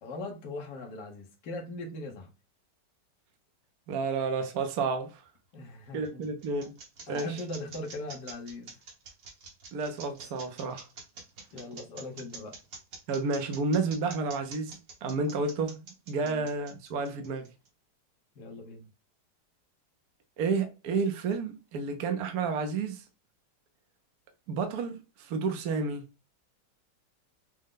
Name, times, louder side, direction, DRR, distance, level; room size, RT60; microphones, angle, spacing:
voice 1, 0.0-2.3 5.5-6.3 7.1-8.7 11.5-12.6 16.2-16.5 18.4-18.9, left 2 dB, 70° left, 1.6 m, -40 dB
voice 2, 3.9-5.2 5.9-6.7 7.1-7.4 9.7-10.9 13.1-17.5 20.4-23.0 24.5-26.0, right 4 dB, 65° right, 1.1 m, -31 dB
sound 1, 5.6-17.7, right 4 dB, 80° right, 2.2 m, -46 dB
6.4 x 2.2 x 3.7 m
omnidirectional pair, 1.9 m